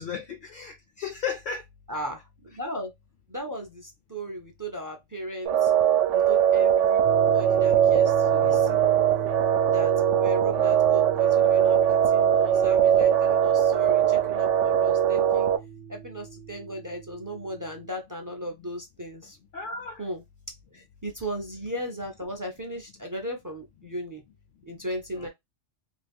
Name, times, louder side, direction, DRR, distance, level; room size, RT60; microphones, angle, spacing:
voice 1, 0.0-1.6 8.4-8.9 19.5-20.0 25.1-25.3, left 6 dB, 60° left, 0.6 m, -35 dB
voice 2, 1.9-2.9 3.3-5.7 6.1-8.8 9.7-15.5 15.9-19.4 20.0-20.2 20.7-24.2 24.7-25.3, equal, 25° right, 0.4 m, -36 dB
sound 1, 5.5-15.6, right 9 dB, 85° right, 0.9 m, -21 dB
sound 2, 7.0-17.9, right 7 dB, 55° right, 0.8 m, -37 dB
2.8 x 2.3 x 3.5 m
omnidirectional pair, 1.2 m